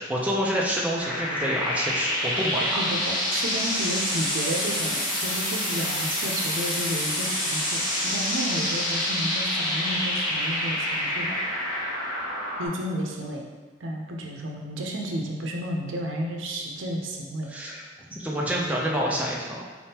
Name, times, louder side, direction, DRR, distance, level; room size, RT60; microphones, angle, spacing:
voice 1, 0.1-2.8 17.5-17.8 18.2-19.6, equal, 10° right, -4 dB, 0.5 m, -27 dB
sound 1, 1.0-12.7, left 1 dB, 75° left, 1.2 m, -27 dB
voice 2, 2.8-11.4 12.6-13.4 13.8-17.5, right 1 dB, 85° right, 0 dB, 0.6 m, -32 dB
4.4 x 3.5 x 2.8 m, 1.4 s
head